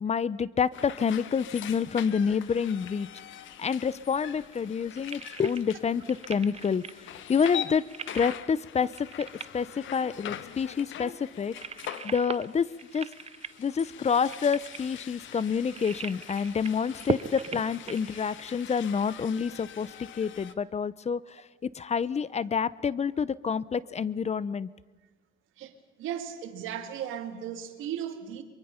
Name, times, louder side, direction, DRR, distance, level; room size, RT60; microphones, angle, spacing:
voice 1, 0.0-3.1 3.6-7.8 8.1-9.3 9.5-9.7 9.9-11.5 12.0-13.1 13.6-19.9 20.2-21.2 21.7-24.7, left 6 dB, 35° left, 20 dB, 0.6 m, -28 dB
sound 1, 0.7-20.5, left 10 dB, 75° left, 1.0 m, -43 dB
sound 2, 2.4-19.0, right 6 dB, 30° right, 0.7 m, -41 dB
voice 2, 26.0-28.4, right 9 dB, 90° right, 7 dB, 1.9 m, -36 dB
23.5 x 23.0 x 5.7 m, 1.3 s
cardioid pair, 90°, 20 cm